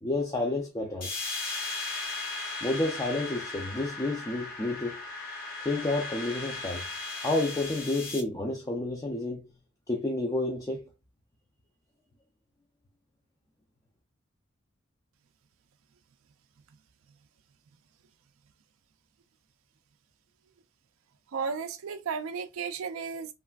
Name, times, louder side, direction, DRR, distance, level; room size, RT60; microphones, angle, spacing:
voice 1, 0.0-1.1 2.6-5.0 5.6-6.9 7.2-9.4 9.9-10.8, left 2 dB, 15° left, 0.4 m, -30 dB
sound 1, 1.0-8.2, left 3 dB, 45° left, 0.7 m, -37 dB
voice 2, 21.3-23.3, right 5 dB, 80° right, 0.4 m, -34 dB
3.2 x 2.4 x 2.3 m
head